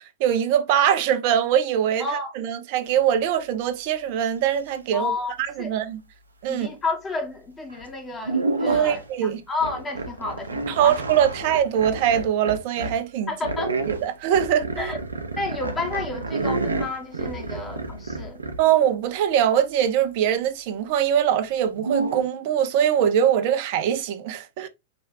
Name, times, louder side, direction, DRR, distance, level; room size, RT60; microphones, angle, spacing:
voice 1, 0.2-2.1 2.4-5.1 5.4-6.0 6.4-6.7 8.7-9.4 10.8-13.3 13.9-14.9 18.6-24.7, right 9 dB, 50° right, 0.9 m, -22 dB
voice 2, 2.0-2.3 4.9-5.7 6.5-11.0 11.3-11.4 13.3-13.7 14.8-15.0 15.4-18.4, left 3 dB, 15° left, 1.7 m, -31 dB
sound 1, 7.7-7.9 8.2-9.1 9.6-13.0 13.4-18.6 21.7-22.3, right 3 dB, 85° right, 0.9 m, -29 dB
5.4 x 3.2 x 2.8 m
hypercardioid pair, 105°, 0 cm